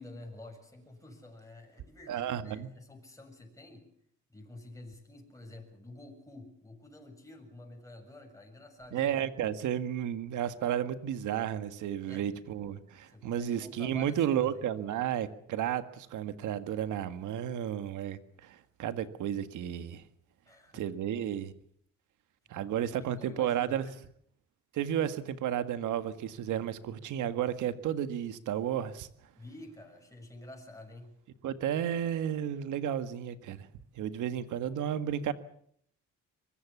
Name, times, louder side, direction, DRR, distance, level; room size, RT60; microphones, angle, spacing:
voice 1, 0.0-3.8 4.3-9.3 12.1-12.3 13.1-14.5 20.5-20.9 22.7-22.9 23.2-23.9 29.4-31.1 34.3-34.8, left 1 dB, 10° left, 6.9 m, -49 dB
voice 2, 2.1-2.7 8.9-20.0 20.7-21.5 22.5-23.8 24.7-29.1 31.4-33.7 34.0-35.3, right 10 dB, 85° right, 1.7 m, -32 dB
23.5 x 21.0 x 7.2 m
cardioid pair, 90°, 30 cm